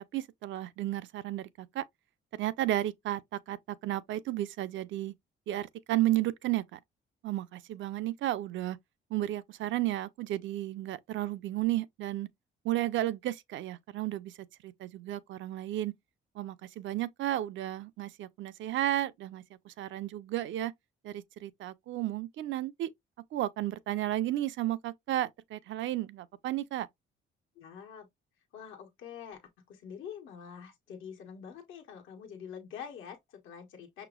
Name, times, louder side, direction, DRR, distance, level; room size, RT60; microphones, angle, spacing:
voice 1, 0.1-1.8 2.3-5.1 5.5-6.8 7.2-8.8 9.1-12.3 12.6-14.3 14.6-15.9 16.4-20.7 21.0-22.9 23.3-26.9, right 14 dB, 75° right, 0.5 m, -33 dB
voice 2, 27.5-28.1 28.5-34.1, left 7 dB, 85° left, 1.2 m, -46 dB
6.0 x 3.0 x 2.3 m
cardioid pair, 90°, 20 cm